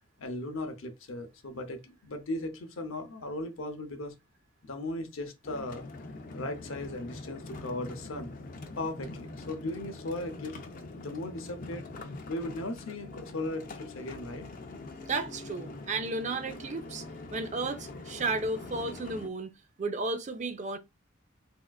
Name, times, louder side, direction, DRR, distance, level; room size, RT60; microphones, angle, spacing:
voice 1, 0.2-4.1 4.6-5.8 6.3-8.3 8.8-10.6 11.0-11.9 12.2-14.5, left 2 dB, 85° left, 0.7 m, -37 dB
sound 1, 5.4-19.3, left 2 dB, 45° left, 0.5 m, -44 dB
voice 2, 15.1-17.0 17.3-19.5 19.8-20.8, right 3 dB, 35° right, 0.4 m, -33 dB
3.5 x 2.3 x 2.3 m
head